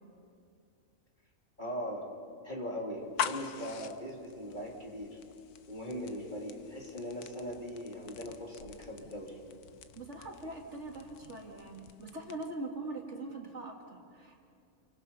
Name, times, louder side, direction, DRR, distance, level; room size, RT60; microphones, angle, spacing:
voice 1, 1.6-2.1 2.4-5.2 5.7-9.4, equal, 30° left, -1 dB, 3.3 m, -40 dB
sound 1, 3.0-12.7, left 7 dB, 90° left, 1.4 m, -44 dB
voice 2, 10.0-14.4, right 2 dB, 50° right, 1 dB, 2.5 m, -42 dB
28.5 x 24.0 x 5.6 m, 2.4 s
omnidirectional pair, 1.6 m